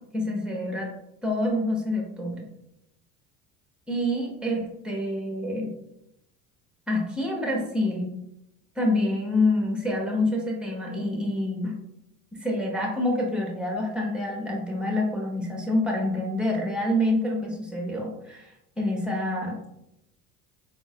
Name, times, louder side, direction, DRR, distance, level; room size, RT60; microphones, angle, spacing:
voice 1, 0.1-0.9 1.2-2.5 3.9-5.7 6.9-8.1 8.7-11.8 12.4-19.7, left 1 dB, ahead, -1 dB, 1.3 m, -27 dB
4.6 x 3.8 x 2.5 m, 0.84 s
hypercardioid pair, 80°, 38 cm